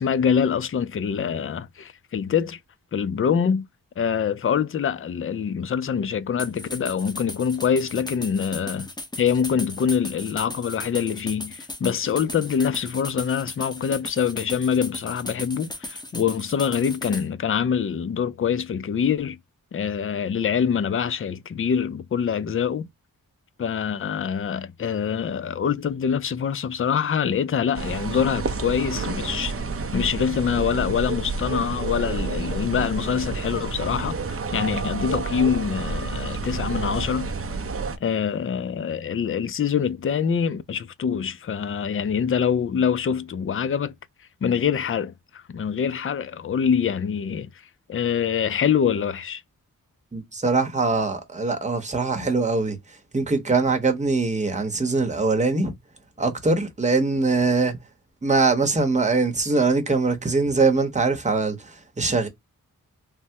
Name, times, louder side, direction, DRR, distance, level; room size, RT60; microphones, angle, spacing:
voice 1, 0.0-2.6 2.9-3.7 4.0-8.9 9.2-19.4 19.7-22.9 23.6-29.5 29.9-37.3 38.0-43.9 44.4-47.5 47.9-49.4, left 7 dB, 40° left, 0.4 m, -25 dB
sound 1, 6.4-17.3, left 2 dB, 10° left, 0.8 m, -36 dB
sound 2, 27.7-38.0, right 4 dB, 40° right, 0.5 m, -29 dB
voice 2, 50.1-52.8 53.1-55.7 56.2-57.8 58.2-62.3, right 3 dB, 20° right, 0.9 m, -22 dB
3.4 x 2.0 x 2.7 m
wide cardioid pair, 105°, 34 cm